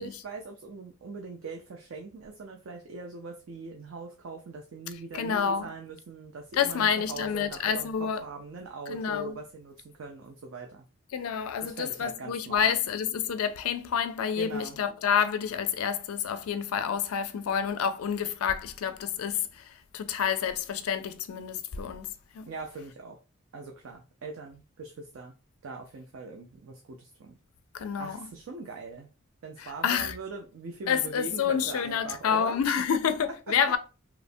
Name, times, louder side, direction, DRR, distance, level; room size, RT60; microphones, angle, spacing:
voice 1, 0.0-10.8 11.6-12.7 14.4-14.8 22.5-23.2 23.5-25.3 25.6-27.4 28.0-29.1 29.4-32.7 33.5-33.6, right 3 dB, 65° right, 0.4 m, -41 dB
voice 2, 5.1-5.7 6.6-8.2 8.9-9.4 11.1-22.1 22.3-22.5 27.7-28.3 29.6-30.1 30.9-33.8, left 7 dB, 80° left, 0.4 m, -28 dB
2.9 x 2.1 x 2.6 m
head